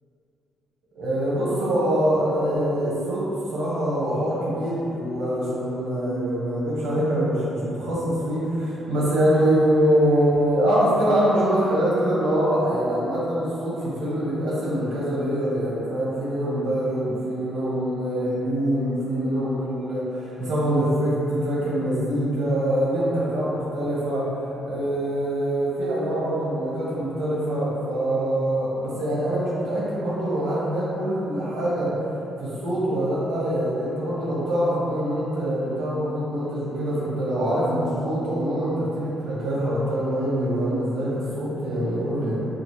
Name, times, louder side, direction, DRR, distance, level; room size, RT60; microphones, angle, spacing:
voice 1, 0.9-3.3 3.5-24.3 24.6-32.0 32.4-42.5, right 1 dB, 80° right, -7 dB, 1.2 m, -24 dB
5.0 x 2.0 x 3.1 m, 3.0 s
cardioid pair, 90°, 0 cm